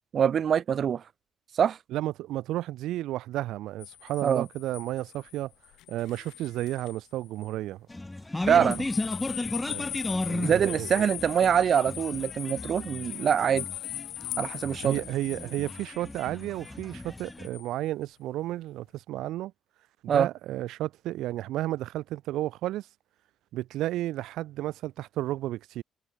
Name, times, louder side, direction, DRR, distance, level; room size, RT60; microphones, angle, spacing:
voice 1, 0.1-1.0 1.5-1.8 4.2-4.5 8.5-8.9 10.4-13.7 14.4-15.0 20.1-20.3, right 8 dB, 55° right, 0.4 m, -24 dB
voice 2, 1.9-5.5 5.9-7.9 8.5-8.7 9.7-9.8 10.2-11.1 14.8-19.5 20.0-22.9 23.5-25.8, right 15 dB, 80° right, 0.7 m, -32 dB
sound 1, 3.8-7.0 7.4-7.5 8.7-17.7, left 16 dB, 85° left, 4.5 m, -40 dB
sound 2, 7.9-17.5, left 2 dB, 15° left, 0.5 m, -35 dB
cardioid pair, 85°, 0 cm